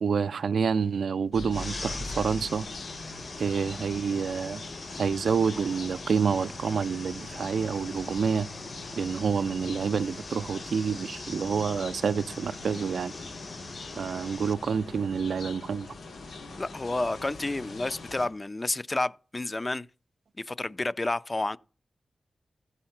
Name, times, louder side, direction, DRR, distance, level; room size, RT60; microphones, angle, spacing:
voice 1, 0.0-2.7 3.4-4.6 4.9-8.5 9.0-13.1 13.9-15.9, right 6 dB, 85° right, 0.4 m, -28 dB
sound 1, 1.3-18.3, left 2 dB, 90° left, 3.8 m, -42 dB
sound 2, 1.5-14.5, left 3 dB, 50° left, 1.2 m, -43 dB
voice 2, 16.6-19.9 20.4-21.6, left 2 dB, 35° left, 0.5 m, -30 dB
14.0 x 5.5 x 5.8 m
cardioid pair, 50°, 0 cm